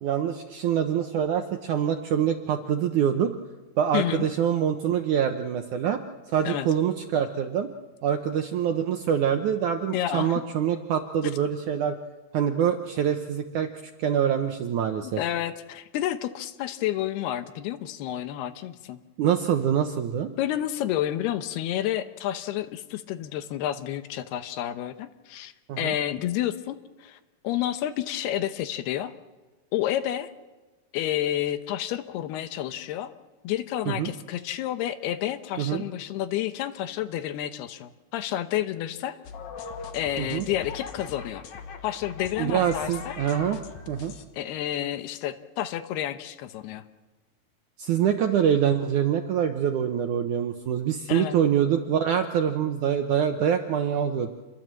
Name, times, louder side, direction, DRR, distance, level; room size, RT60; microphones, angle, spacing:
voice 1, 0.0-3.4 3.8-6.0 6.3-7.7 8.0-12.0 12.3-15.2 19.2-20.3 25.7-25.9 33.9-34.1 35.6-35.8 40.2-40.5 42.4-43.6 43.9-44.1 47.8-54.3, right 9 dB, 70° right, 6 dB, 1.9 m, -25 dB
voice 2, 3.9-4.3 6.5-6.7 9.9-10.4 15.2-19.0 20.4-27.2 27.4-29.1 29.7-30.3 30.9-33.1 33.4-39.2 39.9-41.4 41.8-43.2 44.3-46.8 51.1-51.4, left 12 dB, 80° left, 11 dB, 2.9 m, -30 dB
sound 1, 39.2-44.2, left 5 dB, 60° left, 2.2 m, -40 dB
27.5 x 22.0 x 7.6 m, 1.2 s
omnidirectional pair, 4.8 m